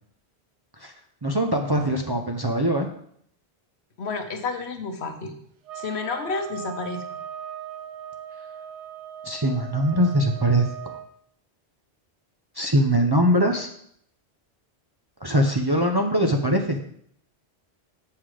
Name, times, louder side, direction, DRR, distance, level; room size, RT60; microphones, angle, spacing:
voice 1, 1.2-2.9 9.2-11.0 12.5-13.7 15.2-16.8, right 1 dB, 25° right, 3 dB, 0.6 m, -22 dB
voice 2, 4.0-5.3 5.7-7.0, left 4 dB, 70° left, 6 dB, 1.2 m, -30 dB
sound 1, 5.6-11.1, right 9 dB, 90° right, 1.0 m, -39 dB
7.6 x 5.7 x 4.9 m, 0.67 s
omnidirectional pair, 1.1 m